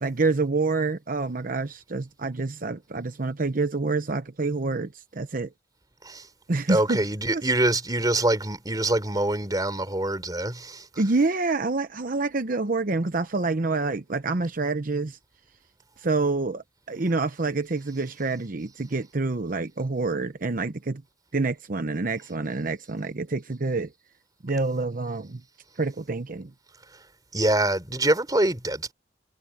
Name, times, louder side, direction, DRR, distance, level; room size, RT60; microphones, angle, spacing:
voice 1, 0.0-5.5 6.5-7.0 7.3-7.4 11.0-15.2 16.0-21.0 21.3-23.9 24.4-25.4 25.8-26.5, right 3 dB, 50° right, 0.8 m, -27 dB
voice 2, 6.7-10.8 27.3-28.9, right 1 dB, 20° right, 3.7 m, -24 dB
head